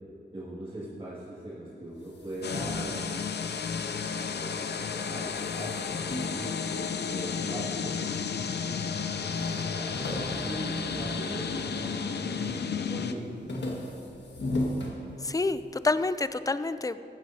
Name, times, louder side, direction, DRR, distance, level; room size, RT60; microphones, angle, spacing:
voice 1, 0.3-3.2 4.1-4.7 5.1-8.3 9.2-13.3, right 1 dB, 30° right, -8 dB, 1.9 m, -40 dB
sound 1, 1.9-4.6 4.9-7.4 8.0-8.7 9.0-9.1 9.3-11.9 12.3-12.7 13.1-15.7, left 1 dB, 85° left, 1.6 m, -37 dB
sound 2, 2.4-13.1, left 6 dB, 70° left, 0.5 m, -32 dB
voice 2, 15.2-17.0, left 3 dB, 20° left, 13 dB, 0.3 m, -28 dB
15.0 x 12.5 x 2.7 m, 2.9 s
wide cardioid pair, 100°, 18 cm